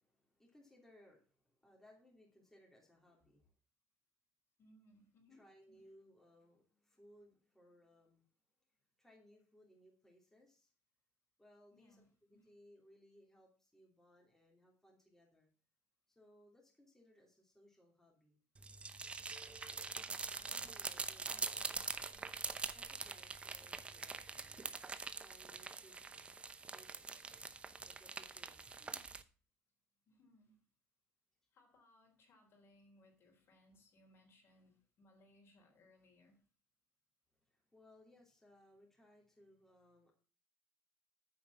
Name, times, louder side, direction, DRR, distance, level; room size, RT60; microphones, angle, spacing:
voice 1, 0.0-3.5 5.3-8.3 8.6-8.7 9.0-10.7 11.4-15.5 16.1-18.4 19.7-19.9 20.5-21.8 22.6-24.8 25.2-26.0 26.7-27.4 27.8-28.6 37.3-40.1, equal, 5° left, -1 dB, 3.0 m, -66 dB
voice 2, 4.6-5.8 11.7-12.5 19.9-20.8 21.2-22.4 28.8-29.1 30.1-30.6 31.5-36.4, left 1 dB, 45° left, 2 dB, 3.7 m, -68 dB
sound 1, 18.6-29.2, right 4 dB, 20° right, 0.7 m, -44 dB
9.1 x 5.1 x 7.1 m, 0.37 s
cardioid pair, 110°, 5 cm